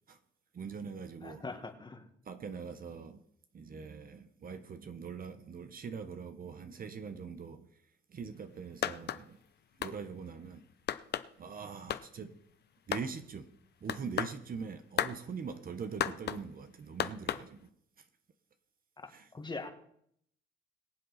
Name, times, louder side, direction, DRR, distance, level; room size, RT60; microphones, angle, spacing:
voice 1, 0.5-1.5 2.2-3.2 3.5-7.7 8.1-9.4 9.8-10.6 11.4-12.4 12.9-13.5 13.8-17.7 18.0-18.1 19.1-19.3, right 5 dB, 45° right, 1.2 m, -42 dB
voice 2, 1.2-2.1 19.0-19.7, left 3 dB, 20° left, 1.9 m, -42 dB
sound 1, 8.8-9.2 9.8-10.0 10.9-11.3 11.9-12.0 12.9-13.1 13.9-14.4 15.0-15.2 16.0-16.4 17.0-17.4, left 10 dB, 55° left, 0.7 m, -33 dB
22.5 x 7.6 x 4.2 m
cardioid pair, 90°, 20 cm